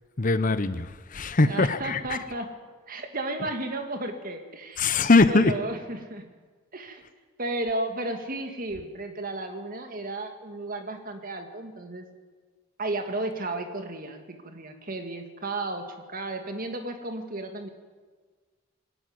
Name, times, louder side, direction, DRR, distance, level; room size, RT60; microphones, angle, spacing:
voice 1, 0.2-2.2 4.8-5.5, left 3 dB, 40° left, 13 dB, 0.9 m, -22 dB
voice 2, 1.4-2.5 2.9-5.0 5.3-6.2 6.7-7.0 7.4-12.1 12.8-17.7, right 2 dB, 45° right, 6 dB, 2.1 m, -33 dB
21.5 x 12.5 x 9.6 m, 1.4 s
head